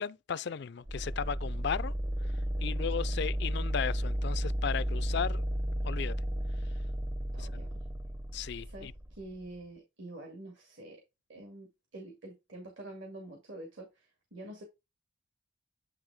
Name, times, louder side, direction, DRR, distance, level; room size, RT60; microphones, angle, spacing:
voice 1, 0.0-1.9 2.6-5.4 5.8-6.2 7.4-7.5 8.3-8.9, left 7 dB, 55° left, 0.4 m, -35 dB
sound 1, 0.9-9.6, equal, 15° right, 0.6 m, -33 dB
voice 2, 7.3-7.7 8.6-11.0 11.3-14.6, right 1 dB, 65° right, 2.2 m, -47 dB
9.6 x 3.4 x 3.5 m
head